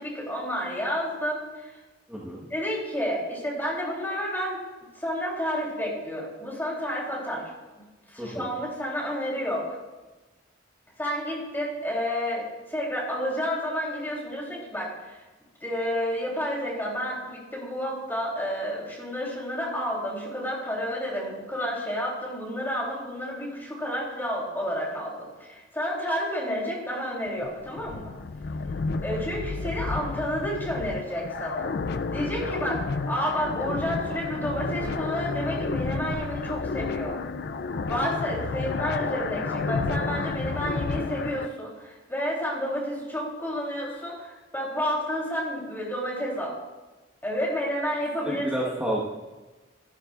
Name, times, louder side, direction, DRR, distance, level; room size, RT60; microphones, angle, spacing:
voice 1, 0.0-1.8 2.5-4.6 4.9-7.5 8.1-9.8 11.0-15.2 15.6-28.2 29.0-31.7 32.1-37.2 37.9-46.6 47.2-48.5, equal, 10° left, -4 dB, 3.4 m, -30 dB
voice 2, 2.1-2.5 8.2-8.5 48.2-49.0, right 1 dB, 5° right, -7 dB, 1.4 m, -30 dB
sound 1, 27.3-41.5, left 4 dB, 60° left, 0.4 m, -31 dB
14.0 x 12.0 x 2.5 m, 1.2 s
head